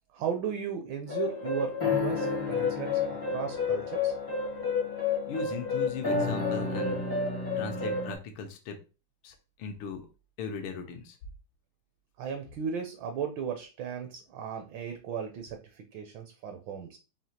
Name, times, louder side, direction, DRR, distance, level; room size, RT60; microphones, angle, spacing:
voice 1, 0.1-4.1 12.2-17.0, right 7 dB, 75° right, 5 dB, 1.3 m, -36 dB
sound 1, 1.1-8.1, left 4 dB, 35° left, 0.3 m, -30 dB
voice 2, 5.3-7.0 7.6-8.8 9.2-10.1 10.4-11.2, left 5 dB, 80° left, 5 dB, 1.5 m, -38 dB
5.0 x 2.7 x 2.8 m, 0.32 s
omnidirectional pair, 2.3 m